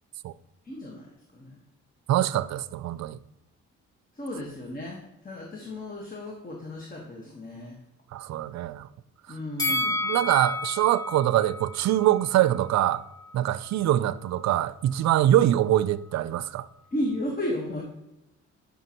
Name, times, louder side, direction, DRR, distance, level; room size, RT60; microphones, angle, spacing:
voice 1, 0.6-1.6 4.1-7.8 9.3-10.0 16.9-17.8, left 1 dB, 30° left, 1.5 m, -34 dB
voice 2, 2.1-3.2 8.1-8.9 9.7-13.0 13.3-16.7, right 13 dB, 65° right, 0.5 m, -24 dB
Bell, 9.6-12.8 13.1-13.3, left 2 dB, 15° left, 1.3 m, -31 dB
11.0 x 5.7 x 3.0 m
cardioid pair, 90°, 30 cm